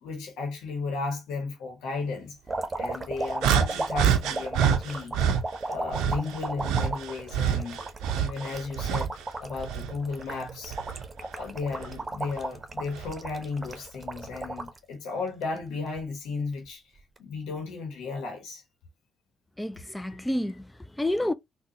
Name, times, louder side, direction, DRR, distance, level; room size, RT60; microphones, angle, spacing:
voice 1, 0.0-2.4 2.7-5.2 5.7-7.8 8.2-9.1 9.4-10.8 11.2-16.8 17.2-18.6 20.2-20.3, left 4 dB, 80° left, 1.0 m, -34 dB
sound 1, 2.5-14.8 15.3-16.0 17.0-17.2, right 2 dB, 30° right, 0.9 m, -35 dB
sound 2, 3.4-5.4 5.9-9.2 9.6-11.1 11.8-12.0 12.9-13.1, right 8 dB, 85° right, 0.5 m, -27 dB
voice 2, 19.6-21.3, left 1 dB, 10° left, 0.5 m, -29 dB
3.8 x 2.3 x 2.7 m
supercardioid pair, 55°, 0 cm